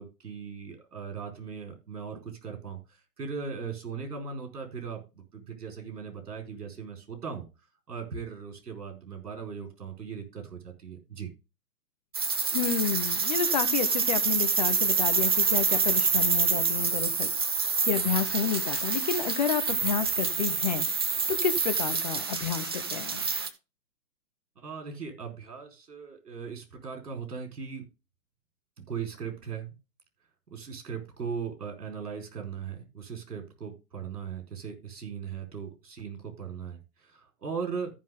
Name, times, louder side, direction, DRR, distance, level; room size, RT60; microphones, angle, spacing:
voice 1, 0.0-2.8 3.2-7.5 7.9-11.3 24.6-27.8 28.9-29.7 30.5-37.9, right 6 dB, 70° right, 4 dB, 4.5 m, -38 dB
sound 1, 12.1-23.5, right 5 dB, 15° right, 0.5 m, -27 dB
voice 2, 12.5-17.3 17.9-20.9 21.3-23.2, left 8 dB, 25° left, 10 dB, 0.7 m, -30 dB
14.0 x 6.0 x 3.7 m, 0.28 s
figure-of-eight pair, 135°, 48 cm